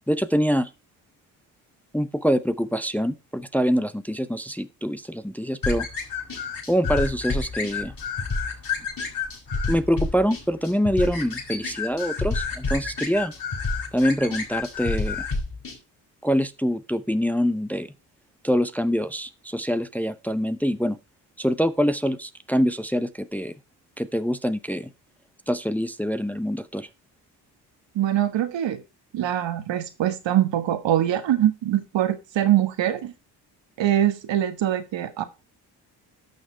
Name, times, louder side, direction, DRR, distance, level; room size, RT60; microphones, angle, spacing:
voice 1, 0.1-0.7 1.9-5.9 6.7-7.9 9.7-13.3 13.9-15.3 16.2-17.9 18.4-21.0 21.4-23.5 24.0-24.9 25.5-26.9, equal, 5° left, 0.8 m, -25 dB
sound 1, 5.6-15.8, left 4 dB, 45° left, 4.9 m, -29 dB
voice 2, 27.9-28.8 29.1-33.1 33.8-35.2, right 12 dB, 65° right, 1.5 m, -23 dB
12.0 x 6.4 x 4.4 m
hypercardioid pair, 50°, 47 cm